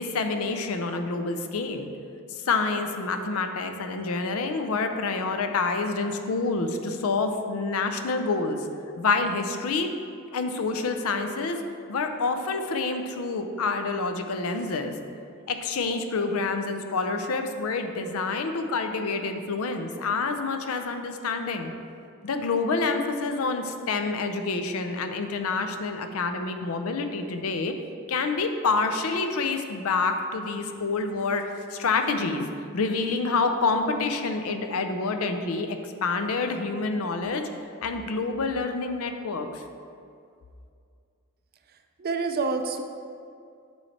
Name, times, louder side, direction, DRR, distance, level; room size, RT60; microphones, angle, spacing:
voice 1, 0.0-1.9 2.3-8.7 9.0-9.9 10.3-11.6 11.9-14.9 15.5-21.7 22.2-27.7 28.1-32.4 32.7-37.5 37.8-39.6, left 4 dB, 70° left, 6 dB, 0.5 m, -27 dB
voice 2, 42.0-42.8, right 4 dB, 45° right, 6 dB, 0.4 m, -27 dB
9.1 x 3.2 x 4.1 m, 2.4 s
head